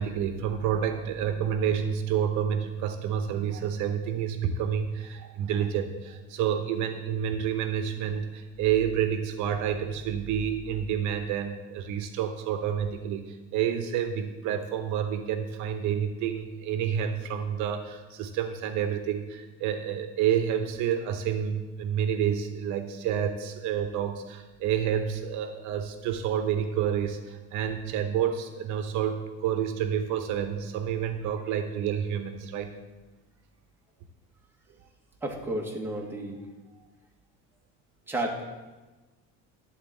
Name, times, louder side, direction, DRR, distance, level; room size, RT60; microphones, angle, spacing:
voice 1, 0.0-32.7, right 8 dB, 70° right, 7 dB, 0.8 m, -29 dB
voice 2, 35.2-36.4 38.1-38.4, right 1 dB, 5° right, -1 dB, 1.4 m, -32 dB
11.0 x 4.0 x 7.5 m, 1.2 s
cardioid pair, 140°, 31 cm